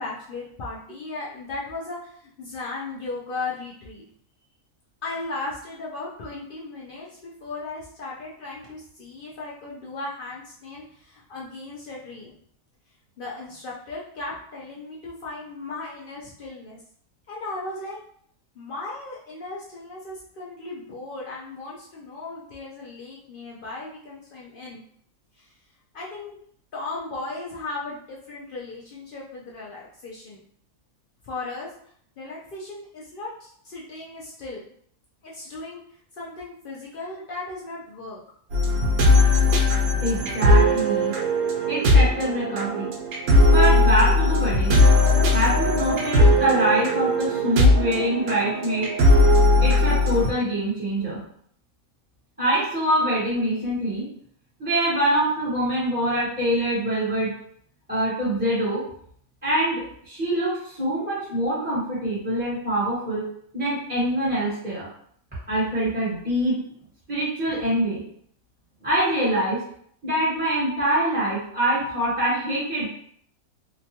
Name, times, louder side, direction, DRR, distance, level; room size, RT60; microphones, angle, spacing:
voice 1, 0.0-4.0 5.0-12.3 13.2-16.8 17.3-18.0 18.5-24.8 25.4-25.5 25.9-26.4 26.7-30.4 31.2-31.7 32.2-34.6 35.2-38.2, left 3 dB, 75° left, -5 dB, 0.5 m, -36 dB
sound 1, 38.5-50.3, left 2 dB, 90° right, 1.1 m, -19 dB
voice 2, 40.0-41.1 41.7-42.9 43.5-44.8 45.3-48.9 49.6-51.2 52.4-54.0 54.6-57.3 57.9-58.8 59.4-63.2 63.5-64.9 65.5-66.6 67.1-68.0 68.8-69.6 70.0-72.9, right 1 dB, 5° right, -11 dB, 1.0 m, -24 dB
2.9 x 2.2 x 2.8 m, 0.63 s
omnidirectional pair, 1.5 m